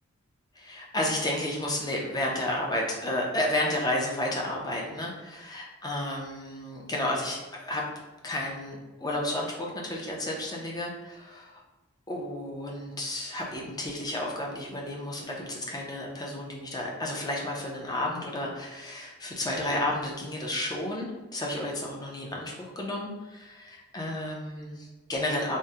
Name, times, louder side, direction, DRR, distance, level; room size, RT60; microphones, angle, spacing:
voice 1, 0.6-7.8 8.2-11.6 12.1-25.6, left 1 dB, 20° left, -2 dB, 0.5 m, -32 dB
3.5 x 2.0 x 2.7 m, 1.1 s
head